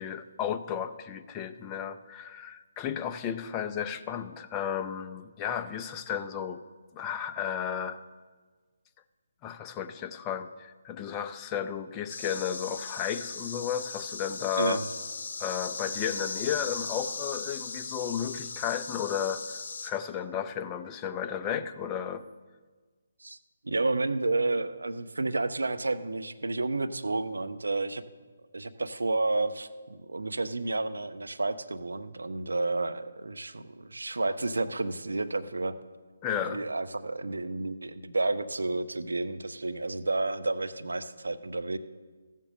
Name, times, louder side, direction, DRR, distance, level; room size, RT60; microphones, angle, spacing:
voice 1, 0.0-6.6 6.9-8.0 9.4-14.8 15.4-22.2 36.2-36.6, left 8 dB, 20° left, 8 dB, 0.5 m, -33 dB
sound 1, 12.1-19.9, left 4 dB, 55° left, 1.2 m, -38 dB
voice 2, 23.6-28.0 28.5-35.8 36.3-41.8, right 2 dB, 80° right, 11 dB, 0.7 m, -31 dB
14.5 x 7.5 x 6.4 m, 1.4 s
figure-of-eight pair, 150°, 0 cm